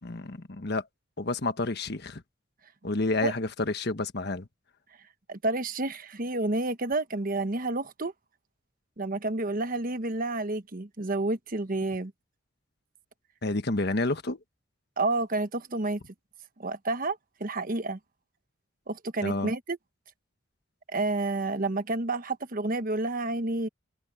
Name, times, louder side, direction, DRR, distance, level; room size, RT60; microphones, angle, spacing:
voice 1, 0.0-0.8 1.2-2.2 2.8-4.5 13.4-14.4 19.2-19.5, left 2 dB, 60° left, 1.4 m, -29 dB
voice 2, 5.3-8.1 9.0-12.1 15.0-16.0 16.6-18.0 18.9-19.8 20.9-23.7, right 2 dB, 50° right, 1.2 m, -30 dB
head